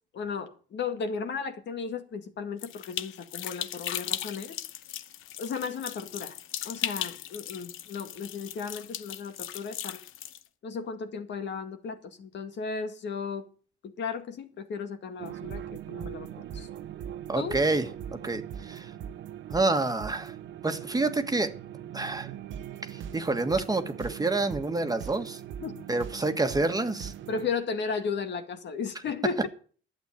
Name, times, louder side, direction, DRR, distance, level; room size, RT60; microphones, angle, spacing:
voice 1, 0.1-4.6 5.4-6.4 6.6-10.0 10.6-13.5 13.8-16.7 17.4-17.6 25.6-25.8 27.3-29.5, left 5 dB, 65° left, 2.1 m, -35 dB
sound 1, 2.6-10.4, left 12 dB, 85° left, 0.8 m, -37 dB
sound 2, 15.2-27.5, right 10 dB, 75° right, 1.0 m, -40 dB
voice 2, 17.3-17.9 18.2-18.9 19.5-20.3 20.6-21.5 21.9-22.3 22.8-25.4 25.9-27.1, right 3 dB, 20° right, 1.6 m, -28 dB
11.5 x 8.3 x 8.4 m
cardioid pair, 90°, 20 cm